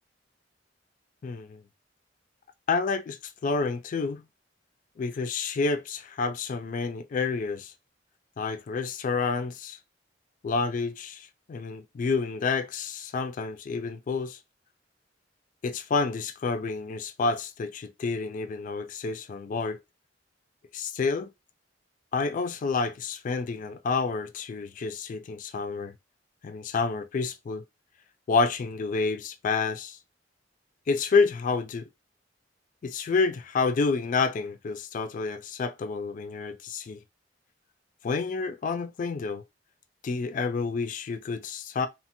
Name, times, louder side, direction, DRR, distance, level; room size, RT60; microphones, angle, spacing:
voice 1, 1.2-1.6 2.7-4.2 5.0-7.7 8.4-9.8 10.4-14.4 15.6-19.8 20.7-21.3 22.1-25.9 26.4-27.6 28.3-30.0 30.9-31.9 32.8-37.0 38.0-39.4 40.0-41.9, left 4 dB, 45° left, 0.3 m, -29 dB
2.8 x 2.2 x 2.8 m
head